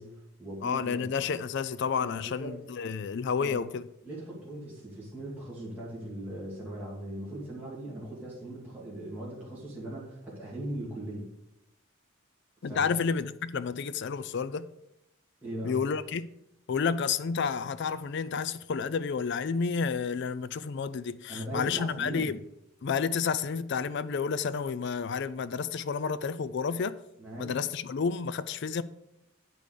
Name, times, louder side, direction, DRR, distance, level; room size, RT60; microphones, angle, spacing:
voice 1, 0.0-1.1 2.0-2.5 3.4-3.6 4.0-11.3 12.6-12.9 15.4-15.8 21.3-22.3 27.2-27.6, right 1 dB, 10° right, 2.3 m, -39 dB
voice 2, 0.6-3.8 12.6-14.7 15.6-16.3 16.7-22.4 22.8-27.0 27.4-28.8, left 5 dB, 55° left, 0.4 m, -30 dB
9.2 x 5.3 x 6.6 m
head